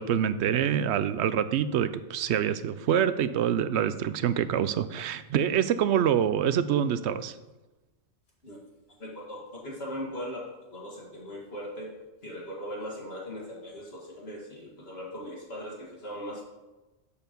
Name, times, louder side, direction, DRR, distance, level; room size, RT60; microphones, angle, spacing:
voice 1, 0.0-7.3, right 9 dB, 75° right, 13 dB, 0.8 m, -26 dB
voice 2, 9.0-11.9 12.2-16.4, equal, 60° left, -3 dB, 2.1 m, -39 dB
12.0 x 4.7 x 5.2 m, 1.1 s
omnidirectional pair, 1.2 m